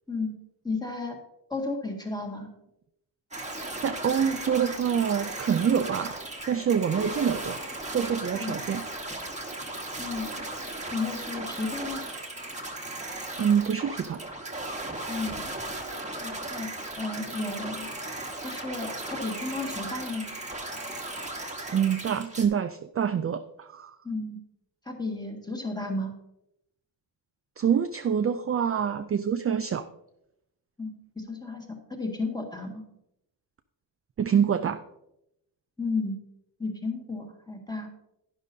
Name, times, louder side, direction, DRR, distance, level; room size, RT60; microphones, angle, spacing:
voice 1, 0.6-1.2 1.5-2.5 8.3-8.5 10.0-10.3 10.9-12.0 15.1-15.4 16.2-16.7 17.0-17.9 18.4-20.2 24.0-24.4 24.8-26.1 30.8-32.8 35.8-36.2 36.6-37.9, left 3 dB, 10° left, 0 dB, 1.8 m, -33 dB
sound 1, 3.3-22.5, right 2 dB, 15° right, 1.3 m, -36 dB
voice 2, 3.8-6.2 6.5-7.6 7.9-8.8 13.4-14.2 21.7-23.9 27.6-29.9 34.2-34.8, right 8 dB, 35° right, 9 dB, 0.4 m, -26 dB
11.5 x 10.5 x 2.7 m, 0.82 s
wide cardioid pair, 135°, 43 cm